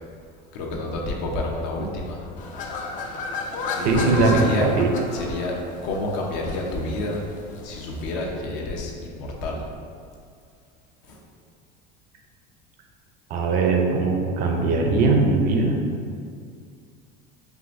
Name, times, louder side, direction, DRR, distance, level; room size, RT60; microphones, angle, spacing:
voice 1, 0.5-2.5 3.7-4.7 5.1-5.5 5.8-7.3 7.6-9.6 11.0-11.2, left 2 dB, 65° left, -1 dB, 0.8 m, -29 dB
sound 1, 2.4-8.2, left 3 dB, 40° left, 0.4 m, -33 dB
voice 2, 3.8-4.9 13.3-15.8, right 3 dB, 40° right, 2 dB, 0.5 m, -20 dB
4.8 x 3.3 x 2.6 m, 2.2 s
cardioid pair, 155°, 21 cm